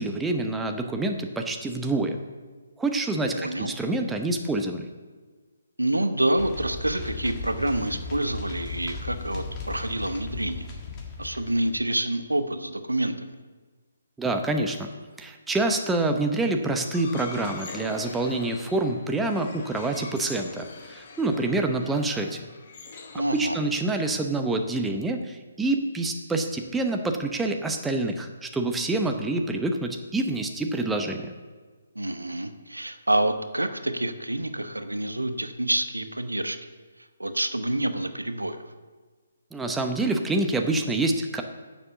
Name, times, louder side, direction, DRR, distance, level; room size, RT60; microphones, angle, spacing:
voice 1, 0.0-2.2 2.8-4.9 14.2-14.9 15.2-22.4 23.3-31.3 39.5-41.4, right 2 dB, 5° right, 4 dB, 0.9 m, -27 dB
voice 2, 3.3-3.7 5.8-10.6 11.2-13.3 23.1-23.6 31.9-36.6 37.2-38.6, right 1 dB, 85° right, 9 dB, 1.1 m, -27 dB
sound 1, 6.4-11.8, left 4 dB, 25° left, 1.7 m, -36 dB
sound 2, 16.7-24.0, left 4 dB, 40° left, 1.5 m, -43 dB
9.9 x 7.4 x 7.1 m, 1.4 s
figure-of-eight pair, 140°, 0 cm